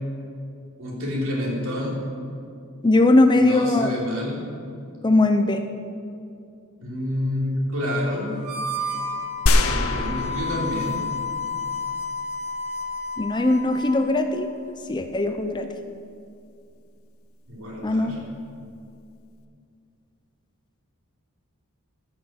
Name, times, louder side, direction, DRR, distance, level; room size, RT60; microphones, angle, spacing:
voice 1, 0.8-2.0 3.3-4.5 6.8-8.4 9.6-11.0 17.5-18.2, left 1 dB, 60° right, -4 dB, 3.1 m, -28 dB
voice 2, 2.8-3.9 5.0-5.6 13.2-14.5 14.9-15.7 17.8-18.1, left 2 dB, 20° left, 7 dB, 0.5 m, -19 dB
Harmonica, 8.3-14.0, left 3 dB, 85° right, 1.8 m, -31 dB
sound 1, 9.5-11.2 11.7-11.8, left 2 dB, 65° left, 0.7 m, -23 dB
13.5 x 6.2 x 7.4 m, 2.5 s
head